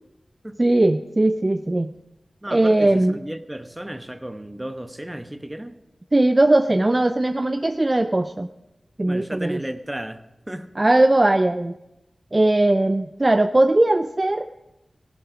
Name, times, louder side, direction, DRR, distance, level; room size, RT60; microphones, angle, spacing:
voice 1, 0.6-1.9 2.5-3.2 6.1-8.5 9.0-9.6 10.8-11.7 12.3-14.7, right 2 dB, 30° right, 8 dB, 0.5 m, -19 dB
voice 2, 2.4-5.8 9.0-10.7, right 1 dB, 15° right, 9 dB, 1.0 m, -34 dB
15.5 x 11.5 x 5.0 m, 0.93 s
wide cardioid pair, 55°, 0 cm